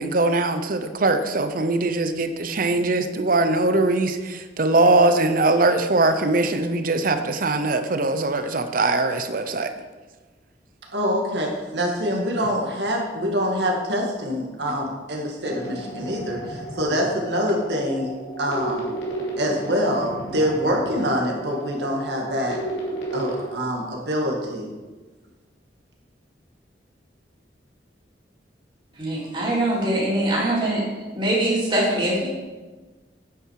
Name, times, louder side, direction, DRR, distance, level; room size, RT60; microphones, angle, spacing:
voice 1, 0.0-9.7, right 2 dB, 50° right, 9 dB, 0.8 m, -21 dB
voice 2, 10.9-18.9 19.3-22.6 23.1-24.7, equal, 70° right, 0 dB, 2.1 m, -25 dB
sound 1, 15.4-23.4, right 1 dB, 80° left, 3.0 m, -33 dB
voice 3, 28.9-30.8 31.1-32.3, right 1 dB, 30° right, -5 dB, 3.4 m, -23 dB
9.6 x 8.9 x 4.8 m, 1.3 s
head